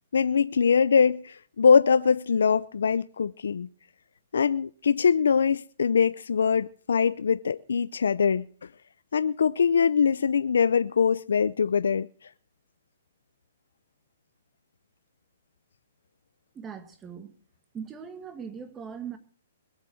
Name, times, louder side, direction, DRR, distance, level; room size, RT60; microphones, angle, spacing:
voice 1, 0.1-3.7 4.3-8.7 9.1-12.1, left 6 dB, 85° left, 0.6 m, -23 dB
voice 2, 16.5-17.3 17.7-19.2, right 7 dB, 15° right, 1.8 m, -40 dB
21.5 x 7.4 x 6.4 m
hypercardioid pair, 160°, 0 cm